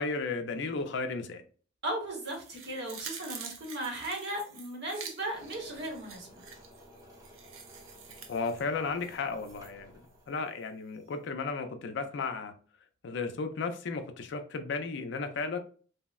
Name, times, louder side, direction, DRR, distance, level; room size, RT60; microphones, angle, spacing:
voice 1, 0.0-1.4 8.3-12.5 13.0-15.6, left 4 dB, 60° left, 0.4 m, -34 dB
voice 2, 1.8-6.5, right 1 dB, 60° right, 0.9 m, -36 dB
sound 1, 2.2-9.7 10.1-10.2, right 6 dB, 80° right, 0.5 m, -47 dB
sound 2, 5.3-10.3, equal, 20° right, 0.7 m, -54 dB
3.3 x 2.0 x 2.3 m
head